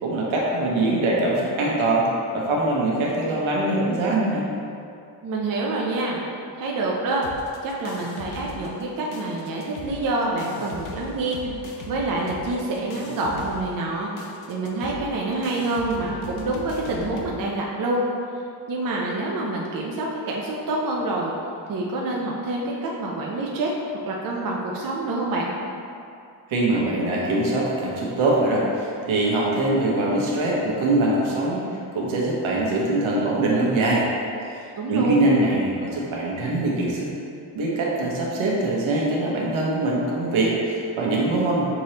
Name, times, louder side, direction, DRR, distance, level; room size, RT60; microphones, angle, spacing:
voice 1, 0.0-2.1 2.3-4.5 26.5-34.1 34.5-37.1 37.5-41.6, right 2 dB, 80° right, -4 dB, 1.1 m, -23 dB
voice 2, 5.2-6.2 6.6-7.2 7.6-11.5 11.9-14.1 14.5-18.0 18.7-21.3 21.7-23.7 24.1-25.5 34.8-35.3, right 2 dB, 45° right, -3 dB, 0.6 m, -27 dB
sound 1, 7.2-8.9 9.1-17.3, left 4 dB, 90° left, 0.7 m, -40 dB
6.0 x 3.1 x 2.8 m, 2.5 s
cardioid pair, 130°, 47 cm